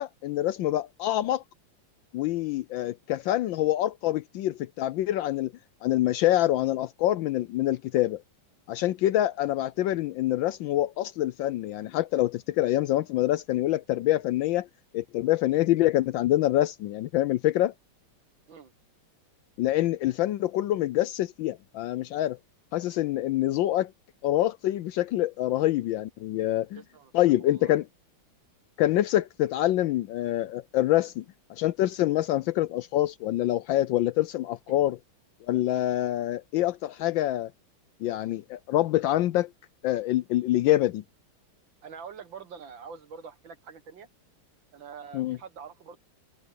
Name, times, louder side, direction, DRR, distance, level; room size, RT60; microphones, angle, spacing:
voice 1, 0.0-1.4 2.1-5.5 5.8-8.2 8.7-14.7 14.9-17.7 19.6-22.4 22.7-23.9 24.2-26.8 27.1-27.8 28.8-31.2 31.5-35.0 35.5-37.5 38.0-39.5 39.8-41.0 45.1-45.4, left 14 dB, 75° left, 1.2 m, -26 dB
voice 2, 26.7-27.1 27.4-27.8 34.7-34.8 41.8-44.1 44.7-46.0, right 6 dB, 65° right, 2.3 m, -45 dB
omnidirectional pair, 2.3 m